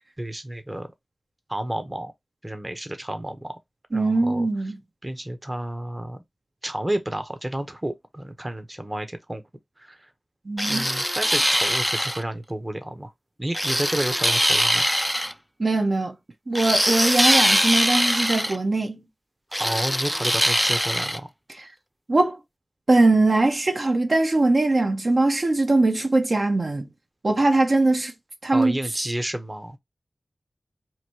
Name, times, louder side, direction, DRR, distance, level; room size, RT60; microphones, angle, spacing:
voice 1, 0.2-0.9 1.5-2.1 2.4-3.5 3.9-4.5 5.0-6.2 6.6-9.4 9.8-10.1 10.7-13.1 13.4-14.9 19.6-21.3 28.5-29.8, right 1 dB, 25° right, 0.8 m, -31 dB
voice 2, 3.9-4.8 10.5-10.8 15.6-16.2 16.5-19.0 21.6-21.7 22.1-22.4 22.9-26.9 27.2-28.1 28.4-28.8, right 2 dB, 60° right, 0.8 m, -21 dB
sound 1, 10.6-12.2 13.5-15.3 16.6-18.6 19.5-21.2, equal, ahead, 0.3 m, -22 dB
2.9 x 2.7 x 4.4 m
wide cardioid pair, 60°, 0 cm